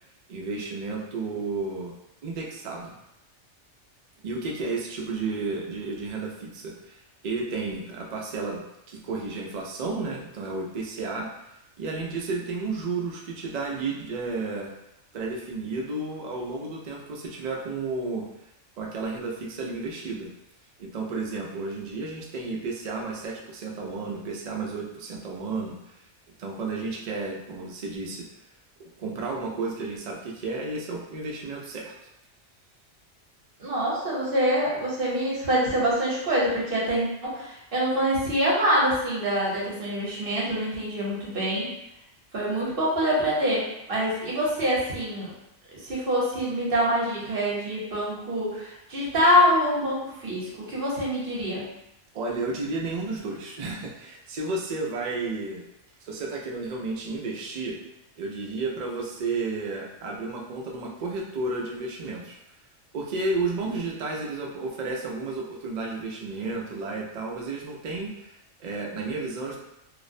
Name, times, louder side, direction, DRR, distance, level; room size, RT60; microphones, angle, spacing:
voice 1, 0.3-1.9 2.2-2.9 4.2-11.3 11.8-14.7 15.1-18.2 18.8-20.3 20.8-26.0 26.4-28.2 29.0-31.9 52.1-55.6 56.0-57.7 58.2-62.4 62.9-69.6, right 3 dB, 90° right, -1 dB, 0.3 m, -32 dB
voice 2, 33.6-41.7 42.3-45.3 45.8-51.7, equal, 50° right, -6 dB, 0.9 m, -25 dB
2.4 x 2.0 x 2.5 m, 0.84 s
omnidirectional pair, 1.3 m